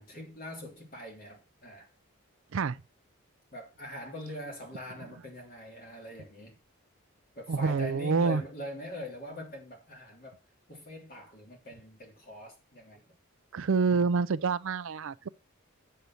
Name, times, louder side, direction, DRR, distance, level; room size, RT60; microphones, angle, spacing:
voice 1, 0.0-1.9 3.5-6.6 7.3-10.4 10.7-13.1, left 1 dB, 40° left, 3.2 m, -43 dB
voice 2, 7.5-8.4 13.5-15.3, right 4 dB, 60° right, 0.4 m, -27 dB
8.2 x 6.6 x 5.9 m
head